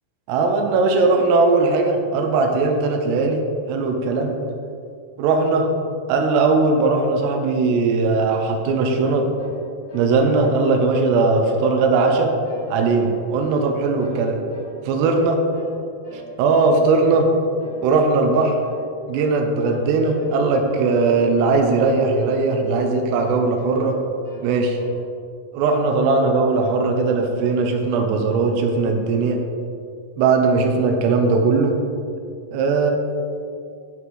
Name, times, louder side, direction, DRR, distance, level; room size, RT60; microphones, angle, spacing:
voice 1, 0.3-3.4 3.7-4.3 5.2-5.7 6.1-9.3 9.9-12.3 12.7-14.4 14.9-15.4 16.4-17.3 17.8-18.6 19.1-24.0 24.4-24.8 25.5-29.4 30.2-31.7 32.5-32.9, right 3 dB, 75° right, 3 dB, 2.7 m, -19 dB
sound 1, 8.9-9.1 9.4-9.6 9.9-11.1 11.4-11.7 11.9-12.2 12.4-12.7 13.0-13.7 14.0-14.8 15.0-15.2 15.5-15.7 16.0-16.3 16.6-16.8 17.1-17.3 17.6-17.8 18.1-18.3 18.6-18.8 19.1-19.3 19.6-19.9 20.1-20.4 20.6-20.9 21.2-21.9 22.2-22.9 23.2-24.0 24.2-25.0, right 1 dB, 30° left, 2.4 m, -39 dB
9.2 x 8.3 x 3.9 m, 2.4 s
omnidirectional pair, 5.3 m